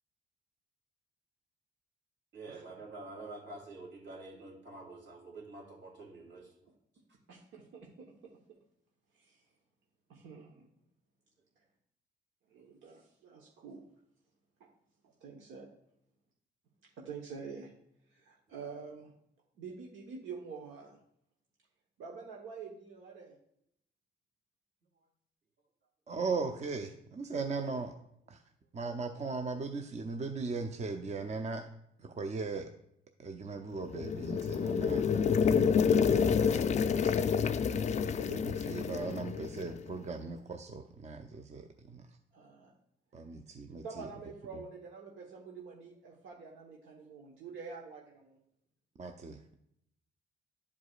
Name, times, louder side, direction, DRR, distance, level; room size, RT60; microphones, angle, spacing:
voice 1, 2.3-6.5, right 2 dB, 60° right, -1 dB, 2.8 m, -48 dB
voice 2, 7.3-8.1 9.1-9.4 10.1-10.7 12.5-13.8 15.0-15.7 17.0-17.7 18.1-19.1 19.6-21.0 22.0-23.3 27.4-27.7 38.0-38.3 42.3-42.7 43.8-48.4, right 5 dB, 80° right, -1 dB, 1.1 m, -47 dB
voice 3, 26.1-27.9 28.3-28.4 28.7-31.7 32.0-32.7 33.2-35.0 35.8-37.2 38.2-42.0 43.1-44.1 44.5-44.6 49.0-49.4, right 4 dB, 35° right, 5 dB, 0.6 m, -38 dB
sound 1, 33.8-39.8, left 6 dB, 35° left, 0.4 m, -28 dB
11.0 x 4.8 x 2.4 m, 0.74 s
cardioid pair, 90°, 20 cm